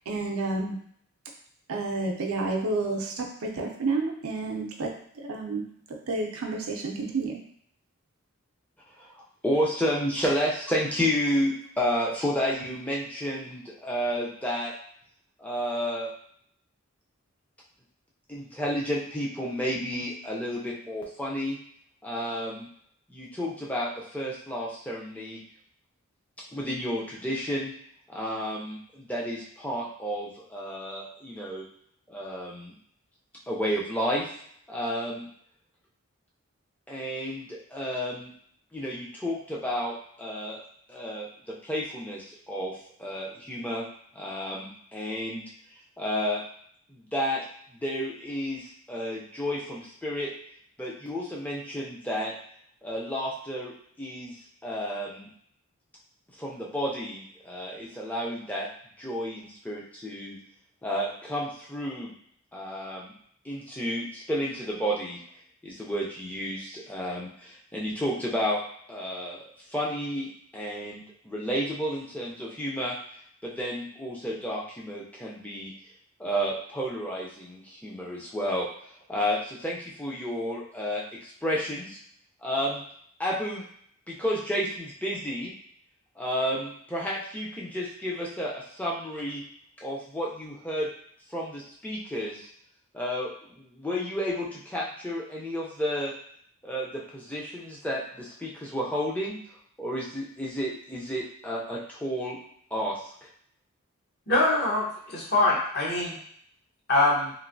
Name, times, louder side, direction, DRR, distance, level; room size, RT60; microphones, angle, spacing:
voice 1, 0.1-0.8 1.7-4.9 5.2-5.7 6.1-7.4, right 3 dB, 80° right, 1 dB, 0.5 m, -30 dB
voice 2, 9.0-14.7 15.4-16.1 18.3-21.6 22.0-22.7 23.1-25.4 26.5-27.7 28.1-31.6 32.1-32.7 33.5-34.3 34.7-35.3 36.9-38.3 38.7-40.6 40.9-43.9 44.1-45.4 46.0-46.4 46.9-47.4 47.7-50.3 50.8-52.3 52.8-54.4 54.6-55.3 56.4-58.7 59.0-60.4 60.8-62.1 62.5-63.1 63.4-65.2 65.6-68.6 68.9-73.0 73.4-75.7 76.2-78.7 79.1-82.0 82.4-82.8 83.2-83.6 84.1-85.5 86.2-89.4 89.8-90.9 91.3-92.5 92.9-96.1 96.6-99.4 99.8-102.4 102.7-103.1, equal, 5° left, -4 dB, 0.5 m, -31 dB
voice 3, 104.3-106.2 106.9-107.3, left 2 dB, 50° left, -4 dB, 0.9 m, -24 dB
3.1 x 2.6 x 2.6 m, 0.64 s
head